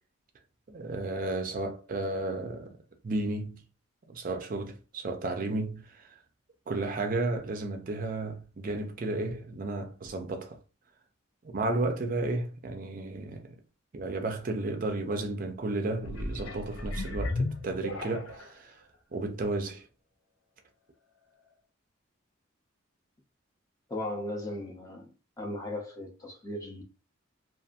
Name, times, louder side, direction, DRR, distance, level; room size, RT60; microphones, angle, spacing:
voice 1, 0.7-3.6 4.0-6.2 6.7-10.6 11.4-13.6 13.9-18.8 19.1-19.9, right 2 dB, 40° right, 0.4 m, -33 dB
sound 1, 15.9-18.6 19.2-19.3, left 2 dB, 85° left, 0.7 m, -34 dB
voice 2, 23.9-25.1 25.4-26.8, left 1 dB, 15° left, 0.6 m, -37 dB
2.6 x 2.5 x 2.4 m
head